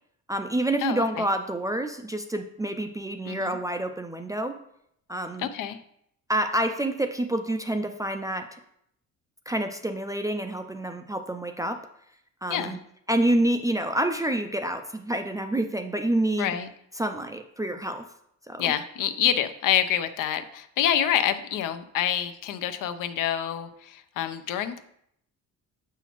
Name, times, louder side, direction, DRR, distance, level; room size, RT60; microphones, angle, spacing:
voice 1, 0.3-4.6 5.1-5.5 6.3-8.6 9.5-11.8 12.4-12.8 13.1-16.6 17.0-18.1 18.5-18.7, right 1 dB, 10° right, 6 dB, 0.3 m, -28 dB
voice 2, 0.8-1.2 3.3-3.6 5.4-5.8 12.5-12.8 16.4-16.7 18.6-24.8, left 10 dB, 70° left, 10 dB, 0.6 m, -27 dB
6.9 x 5.7 x 3.0 m, 0.73 s
cardioid pair, 125°, 33 cm